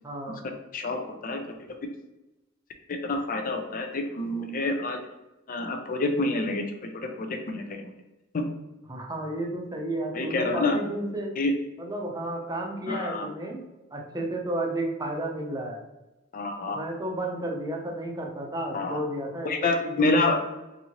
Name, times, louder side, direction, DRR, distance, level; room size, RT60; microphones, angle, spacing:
voice 1, 0.0-0.4 8.9-11.4 11.8-13.6 13.9-15.8 16.7-20.1, right 1 dB, 20° right, 0 dB, 0.6 m, -32 dB
voice 2, 0.7-1.6 2.9-5.0 5.5-7.8 8.3-8.4 10.1-10.8 11.4-11.5 12.9-13.3 16.3-16.8 18.7-19.0 19.4-20.4, left 2 dB, 45° left, 5 dB, 0.5 m, -27 dB
4.2 x 2.7 x 2.9 m, 1.0 s
head